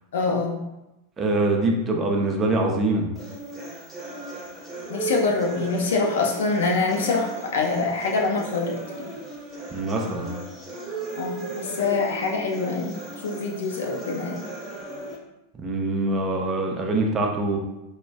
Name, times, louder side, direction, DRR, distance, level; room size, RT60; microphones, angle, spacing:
voice 1, 0.1-0.6 4.9-9.1 11.1-13.0 13.2-14.4, left 3 dB, 60° left, 0 dB, 0.5 m, -25 dB
voice 2, 1.2-3.0 9.7-10.3 15.6-17.6, right 2 dB, 20° right, 1 dB, 0.4 m, -24 dB
sound 1, 3.1-15.2, right 3 dB, 5° right, 0.9 m, -36 dB
2.3 x 2.1 x 3.2 m, 0.93 s
figure-of-eight pair, 90°, 0 cm